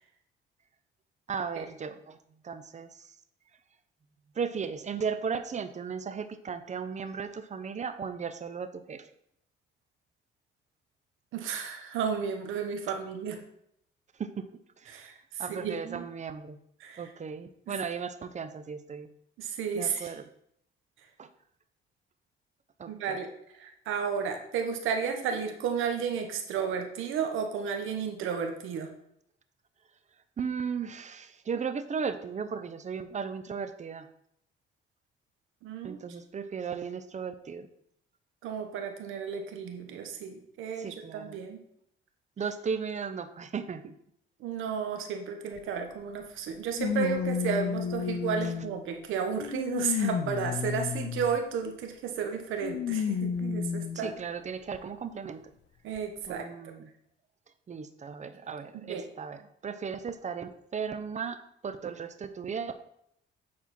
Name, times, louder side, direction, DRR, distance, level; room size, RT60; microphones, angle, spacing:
voice 1, 1.3-2.2 2.4-3.1 4.3-9.1 14.2-14.4 14.8-15.1 15.4-16.6 17.0-19.1 19.7-20.2 21.2-21.3 22.8-23.2 30.4-34.1 35.8-37.7 40.8-41.4 42.4-43.9 53.9-55.4 56.3-56.9 57.7-62.8, right 6 dB, 35° right, 10 dB, 0.7 m, -36 dB
voice 2, 11.3-13.4 14.9-15.7 16.8-17.1 19.4-20.1 22.9-28.9 35.6-36.0 38.4-41.6 44.4-54.1 55.8-56.7 58.7-59.0, right 6 dB, 85° right, 5 dB, 1.2 m, -33 dB
sound 1, 45.6-45.7 46.8-48.8 49.4-51.4 52.6-54.0 54.7-54.8 56.0-56.1, left 7 dB, 65° left, 0.7 m, -31 dB
8.5 x 4.3 x 4.3 m, 0.74 s
cardioid pair, 90°, 20 cm